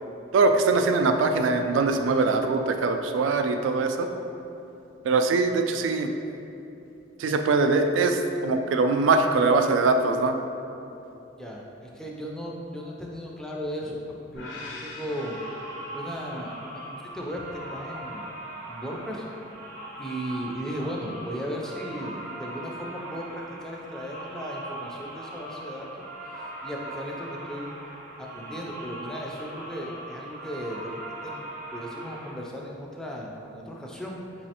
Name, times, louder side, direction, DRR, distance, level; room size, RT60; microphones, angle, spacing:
voice 1, 0.3-4.1 5.0-6.1 7.2-10.4, right 3 dB, 80° right, 6 dB, 0.3 m, -22 dB
voice 2, 11.4-15.4 15.9-18.3 18.7-19.3 20.0-26.1 26.3-27.8 28.2-34.2, equal, 5° left, -2 dB, 0.3 m, -36 dB
sound 1, 14.3-16.6, left 2 dB, 70° left, 0.5 m, -42 dB
sound 2, 14.9-32.3, right 1 dB, 40° right, 0.7 m, -40 dB
4.7 x 3.1 x 2.8 m, 2.9 s
head